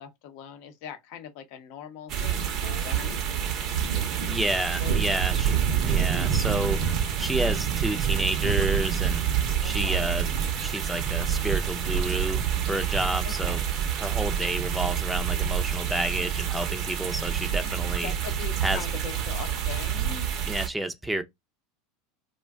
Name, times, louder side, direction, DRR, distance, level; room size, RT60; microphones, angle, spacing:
voice 1, 0.0-3.2 4.8-5.0 9.6-10.1 13.2-13.6 17.5-17.7 18.0-20.3, left 8 dB, 65° left, 0.7 m, -41 dB
sound 1, 2.1-20.7, right 8 dB, 50° right, 0.6 m, -27 dB
voice 2, 4.2-5.5 5.8-6.8 7.2-9.2 9.6-10.3 10.6-13.6 14.0-18.1 18.6-18.9 20.5-21.2, right 1 dB, 5° right, 0.5 m, -30 dB
2.4 x 2.2 x 3.4 m
supercardioid pair, 105°, 0 cm